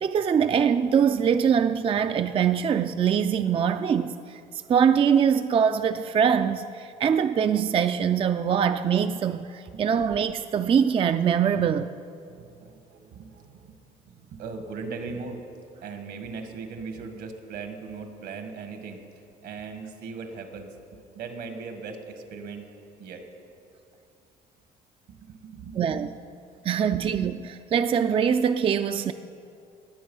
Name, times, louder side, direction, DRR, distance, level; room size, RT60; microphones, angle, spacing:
voice 1, 0.0-4.4 4.7-11.9 25.8-26.1 26.6-29.1, right 7 dB, 30° right, 0.4 m, -23 dB
voice 2, 12.3-13.7 14.0-15.4 15.8-19.0 19.4-22.7 23.0-23.3 25.1-26.1 26.8-27.0, right 4 dB, 75° right, 1.6 m, -39 dB
19.5 x 8.0 x 5.5 m
cardioid pair, 110°, 17 cm